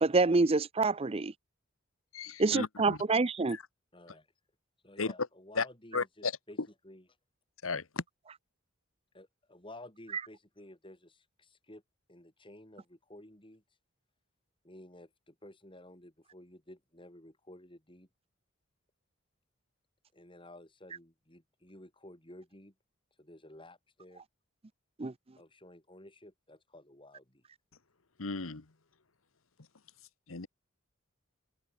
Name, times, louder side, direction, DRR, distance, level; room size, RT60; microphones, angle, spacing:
voice 1, 0.0-1.3 2.4-3.6 25.0-25.1, right 3 dB, 30° right, 0.5 m, -27 dB
voice 2, 2.1-3.0 3.5-3.6 5.0-5.1 5.5-5.7 5.9-6.3 7.6-8.0 28.2-28.7 30.3-30.5, left 4 dB, 90° left, 1.4 m, -34 dB
voice 3, 3.9-4.3 4.8-6.6 6.8-7.1 9.1-11.8 12.1-13.6 14.6-18.1 20.1-22.7 23.2-24.2 25.4-27.4, left 1 dB, 25° left, 6.8 m, -53 dB
head